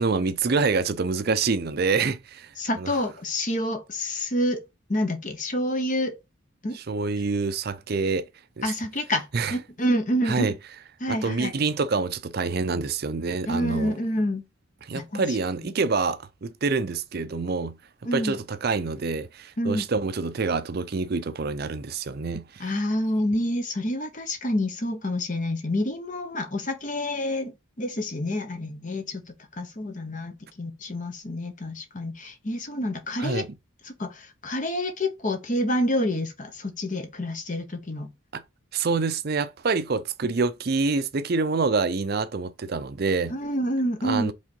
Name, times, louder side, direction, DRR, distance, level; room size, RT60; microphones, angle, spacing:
voice 1, 0.0-2.5 2.8-3.0 6.7-8.3 8.6-8.7 9.3-9.5 10.3-10.5 11.1-13.9 14.8-17.8 18.1-22.7 33.2-33.5 38.3-38.4 38.7-43.4 44.0-44.3, right 4 dB, 50° right, 0.5 m, -26 dB
voice 2, 2.6-6.2 6.6-6.8 8.6-10.5 11.0-11.5 13.5-14.4 14.9-15.2 18.0-18.4 19.6-19.8 22.6-29.2 29.6-33.4 33.8-38.1 43.3-44.3, left 1 dB, 40° left, 1.1 m, -28 dB
5.4 x 3.7 x 5.3 m
head